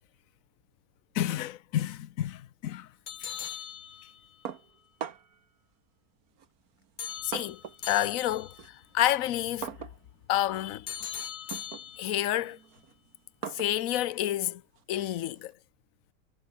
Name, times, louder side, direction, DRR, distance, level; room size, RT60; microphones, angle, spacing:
voice 1, 1.1-2.9 7.2-7.6 7.9-9.7 10.3-10.9 12.0-12.6 13.5-14.6 14.9-15.5, left 13 dB, 60° left, 1.1 m, -29 dB
sound 1, 3.1-4.4 7.0-8.7 10.9-12.4, left 8 dB, 85° left, 0.4 m, -40 dB
sound 2, 4.5-5.5 6.4-7.9 8.2-15.5, right 8 dB, 60° right, 1.8 m, -44 dB
omnidirectional pair, 1.8 m